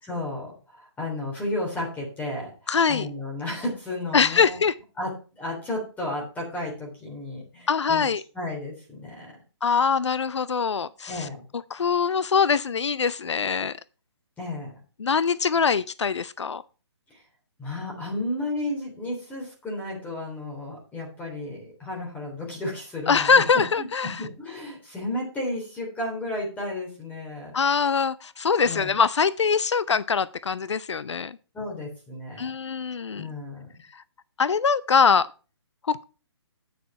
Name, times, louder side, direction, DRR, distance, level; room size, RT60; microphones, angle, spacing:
voice 1, 0.0-4.6 5.0-8.1 8.3-9.3 11.1-11.4 14.4-14.7 17.1-17.2 17.6-23.3 23.8-27.5 28.6-28.9 31.5-32.5 33.2-33.6, left 1 dB, 10° left, 3.4 m, -33 dB
voice 2, 2.7-3.1 4.1-4.7 7.7-8.2 9.6-11.3 11.7-13.8 15.0-16.6 23.1-24.2 27.5-31.4 32.4-33.3 33.9-34.0 34.4-35.3 35.8-36.0, left 6 dB, 85° left, 0.5 m, -23 dB
9.3 x 6.4 x 5.6 m
hypercardioid pair, 145°, 14 cm